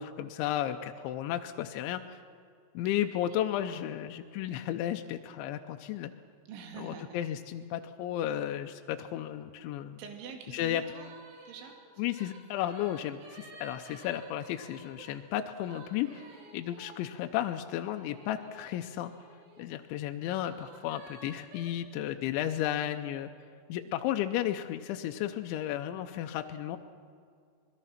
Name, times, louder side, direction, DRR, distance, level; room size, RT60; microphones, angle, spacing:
voice 1, 0.0-2.0 2.7-6.1 6.8-10.0 10.5-10.8 12.0-16.2 16.5-19.1 19.6-23.3 23.7-26.8, left 12 dB, 80° left, 6 dB, 2.8 m, -33 dB
voice 2, 6.5-7.2 8.2-8.3 10.0-11.1 11.5-11.8, right 7 dB, 70° right, 3 dB, 4.3 m, -45 dB
sound 1, 10.0-10.3 10.6-19.7 20.3-21.7, right 2 dB, 85° right, 5.7 m, -53 dB
24.5 x 21.0 x 5.8 m, 2.2 s
omnidirectional pair, 6.0 m